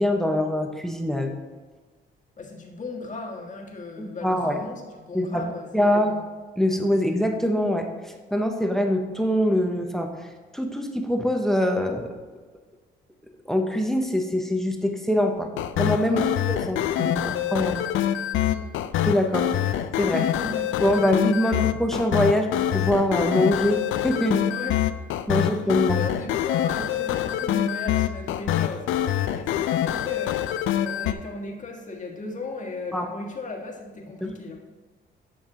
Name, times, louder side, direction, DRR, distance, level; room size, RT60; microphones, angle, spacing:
voice 1, 0.0-1.3 4.0-4.6 5.1-6.2 6.6-10.1 10.5-12.1 13.5-15.5 15.8-17.8 19.0-20.2 20.8-24.5 25.3-26.0 32.9-33.1, left 1 dB, ahead, 4 dB, 0.9 m, -24 dB
voice 2, 2.4-6.2 16.0-16.3 18.5-18.7 20.1-20.8 21.4-21.5 24.5-24.9 25.3-25.5 25.9-34.6, left 3 dB, 40° left, 1 dB, 1.6 m, -36 dB
sound 1, 15.6-31.1, left 11 dB, 85° left, 0.4 m, -25 dB
10.0 x 5.5 x 3.9 m, 1.4 s
cardioid pair, 90°, 20 cm